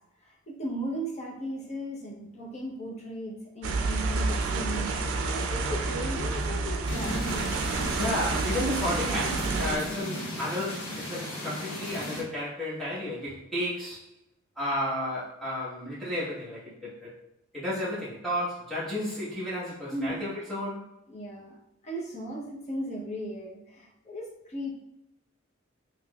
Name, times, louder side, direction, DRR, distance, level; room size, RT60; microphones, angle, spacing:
voice 1, 0.2-5.0 5.3-7.4 19.9-20.2 21.1-21.6 21.8-24.7, equal, 35° left, -3 dB, 0.7 m, -36 dB
sound 1, 3.6-9.8, right 3 dB, 90° right, 0.4 m, -29 dB
sound 2, 6.9-12.2, left 1 dB, 70° left, 1.3 m, -35 dB
voice 2, 8.0-14.0 14.6-17.1 17.5-20.9, left 1 dB, ahead, -11 dB, 1.2 m, -32 dB
3.7 x 3.1 x 2.3 m, 0.86 s
head